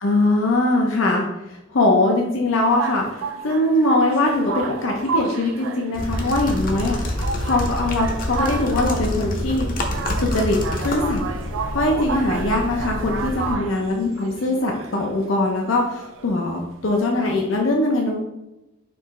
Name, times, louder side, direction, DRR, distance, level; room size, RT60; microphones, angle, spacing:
voice 1, 0.0-9.7 10.2-10.6 10.8-11.2 11.7-18.2, left 2 dB, 80° left, 0 dB, 0.6 m, -21 dB
sound 1, 2.5-17.4, right 5 dB, 80° right, 0.4 m, -32 dB
sound 2, 5.9-13.5, left 1 dB, 45° left, 0.7 m, -27 dB
4.7 x 3.0 x 3.6 m, 0.94 s
head